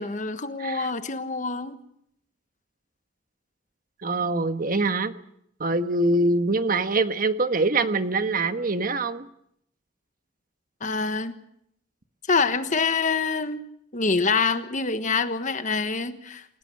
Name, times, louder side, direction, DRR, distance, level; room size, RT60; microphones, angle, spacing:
voice 1, 0.0-1.8 10.8-11.3 12.3-13.7 13.9-16.4, left 4 dB, 40° left, 10 dB, 1.3 m, -26 dB
voice 2, 4.0-5.1 5.6-9.3, right 2 dB, 45° right, 9 dB, 1.4 m, -24 dB
28.5 x 16.5 x 7.9 m, 0.73 s
head